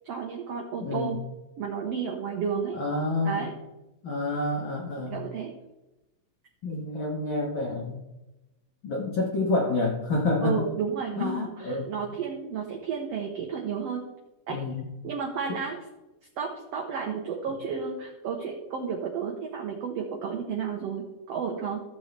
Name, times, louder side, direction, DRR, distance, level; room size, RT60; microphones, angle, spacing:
voice 1, 0.0-1.2 1.6-2.8 3.2-3.5 5.1-5.5 10.4-14.0 14.5-14.6 15.0-15.8 16.4-21.8, right 6 dB, 70° right, 0 dB, 1.6 m, -32 dB
voice 2, 0.8-1.1 2.7-3.4 4.0-5.1 6.6-8.0 8.8-10.6 11.2-12.0 14.5-14.8 15.5-15.6, left 2 dB, 60° left, -1 dB, 1.2 m, -28 dB
14.5 x 7.0 x 3.3 m, 1.0 s
omnidirectional pair, 4.0 m